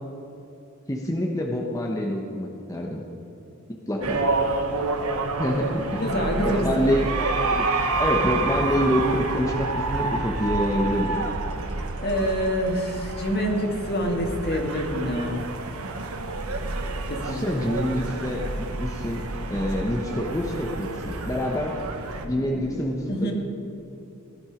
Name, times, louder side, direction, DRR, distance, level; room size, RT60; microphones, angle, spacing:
voice 1, 0.9-3.0 3.7-4.3 5.4-7.7 8.0-11.2 17.2-19.2 19.5-21.7 22.3-23.3, equal, 15° left, -1 dB, 1.0 m, -27 dB
sound 1, 4.0-22.3, right 3 dB, 75° right, 1.1 m, -29 dB
voice 2, 6.0-6.9 12.0-15.5 17.1-17.7 22.2-23.3, equal, 45° left, 2 dB, 1.7 m, -27 dB
16.5 x 11.5 x 5.1 m, 2.8 s
head